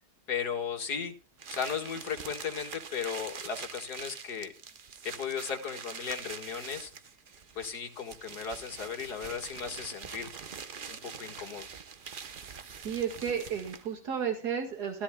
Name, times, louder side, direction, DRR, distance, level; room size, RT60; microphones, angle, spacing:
voice 1, 0.3-1.1 1.5-4.5 5.0-6.9 7.6-10.3 10.9-11.7, left 7 dB, 75° left, 4 dB, 2.3 m, -36 dB
sound 1, 1.4-14.0, right 6 dB, 40° right, 0.8 m, -44 dB
voice 2, 12.8-15.0, right 7 dB, 80° right, 4 dB, 2.4 m, -32 dB
16.0 x 13.0 x 2.3 m, 0.35 s
omnidirectional pair, 1.7 m